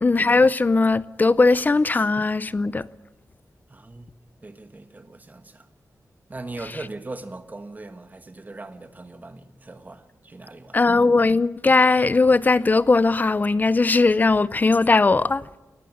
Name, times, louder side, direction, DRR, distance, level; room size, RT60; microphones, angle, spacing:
voice 1, 0.0-2.9 10.7-15.4, left 3 dB, 25° left, 0.6 m, -19 dB
voice 2, 3.7-4.1 4.4-5.7 6.3-10.8, right 2 dB, 25° right, 1.4 m, -39 dB
20.0 x 14.5 x 9.9 m
wide cardioid pair, 175°, 7 cm